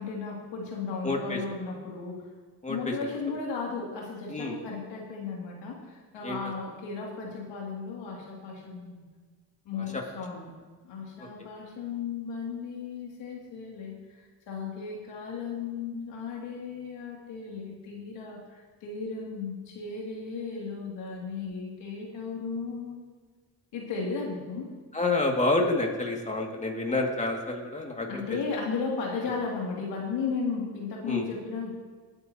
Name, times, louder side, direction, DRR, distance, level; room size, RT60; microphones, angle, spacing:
voice 1, 0.0-2.3 2.7-9.0 9.6-10.5 10.8-23.0 23.7-24.7 28.1-31.7, left 5 dB, 80° left, -2 dB, 2.8 m, -35 dB
voice 2, 1.0-1.4 2.6-2.8 4.3-4.5 6.2-6.4 9.9-10.0 24.9-28.4 31.0-31.2, left 2 dB, 15° left, 0 dB, 2.4 m, -28 dB
20.0 x 9.0 x 3.0 m, 1.5 s
cardioid pair, 65°, 43 cm